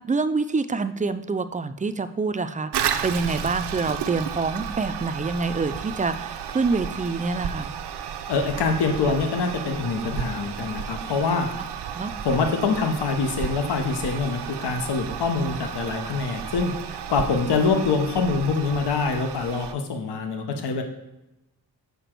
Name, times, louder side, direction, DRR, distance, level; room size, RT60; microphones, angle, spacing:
voice 1, 0.1-7.7 11.6-11.7 11.9-12.1, right 4 dB, 20° right, 11 dB, 0.3 m, -26 dB
Toilet flush, 2.7-19.7, right 8 dB, 80° right, 0.6 m, -33 dB
voice 2, 8.3-11.5 12.2-16.7 17.1-20.8, left 4 dB, 90° left, 5 dB, 0.9 m, -25 dB
6.9 x 4.9 x 4.4 m, 0.93 s
cardioid pair, 95°, 39 cm